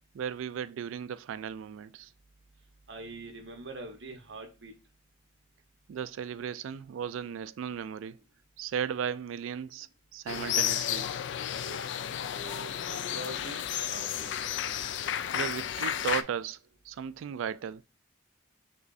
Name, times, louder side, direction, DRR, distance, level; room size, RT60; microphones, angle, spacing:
voice 1, 0.1-2.1 5.9-8.2 8.6-11.1 15.3-16.6 16.8-17.8, right 8 dB, 85° right, 0.3 m, -36 dB
voice 2, 2.9-4.7 11.6-11.8 12.3-13.6 13.9-14.3, right 1 dB, 70° right, 1.1 m, -43 dB
sound 1, 10.3-16.2, left 10 dB, 70° left, 0.3 m, -32 dB
6.1 x 3.1 x 2.6 m
head